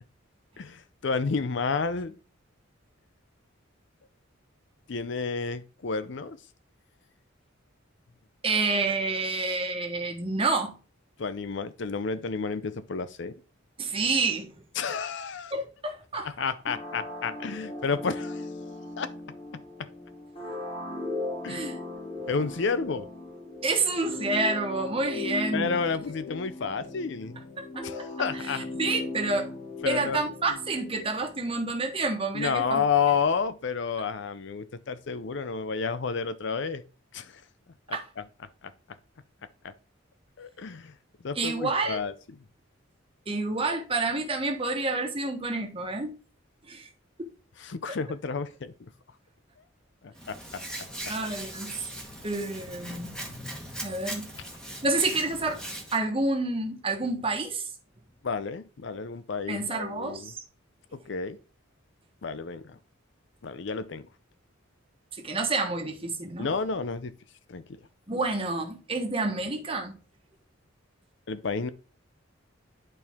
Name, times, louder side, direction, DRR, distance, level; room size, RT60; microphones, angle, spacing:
voice 1, 0.6-2.1 4.9-6.4 11.2-13.3 14.8-15.5 16.2-18.4 19.0-19.1 21.4-21.7 22.3-23.1 25.5-27.4 27.8-28.7 29.8-30.3 32.3-36.8 37.1-37.4 38.2-38.3 40.4-40.9 41.2-42.1 47.6-48.7 50.0-50.6 58.2-60.3 60.9-61.4 62.2-62.8 63.4-64.0 66.4-67.1 67.5-67.8 71.3-71.7, left 5 dB, 60° left, 0.5 m, -30 dB
voice 2, 8.4-10.7 13.8-14.6 15.5-16.3 21.5-21.8 23.6-25.7 27.6-28.1 28.3-29.5 29.8-32.8 37.9-38.0 41.3-42.0 43.3-46.2 46.7-46.9 47.2-47.3 47.9-48.0 51.1-51.8 52.2-53.1 53.8-54.3 54.8-55.6 55.9-57.7 59.5-60.4 65.2-66.5 68.1-70.0, right 3 dB, 25° right, 1.3 m, -29 dB
sound 1, 16.7-31.2, left 2 dB, 35° left, 2.1 m, -38 dB
Hands, 50.2-56.0, right 1 dB, 5° left, 1.3 m, -40 dB
10.5 x 4.5 x 3.5 m
head